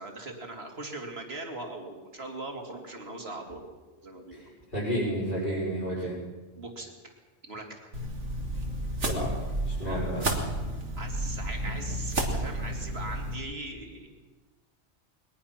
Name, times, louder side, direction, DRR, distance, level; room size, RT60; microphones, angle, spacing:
voice 1, 0.0-3.6 4.0-4.4 6.0-6.1 6.5-7.2 7.4-7.9 9.8-10.0 10.3-10.5 11.0-14.1, right 2 dB, 60° right, 2 dB, 3.0 m, -40 dB
voice 2, 4.3-6.2 9.0-9.3 9.6-10.2, equal, 50° left, -8 dB, 5.7 m, -31 dB
sound 1, 7.9-13.4, right 1 dB, 80° right, 2.8 m, -31 dB
22.5 x 20.0 x 5.9 m, 1.3 s
omnidirectional pair, 1.2 m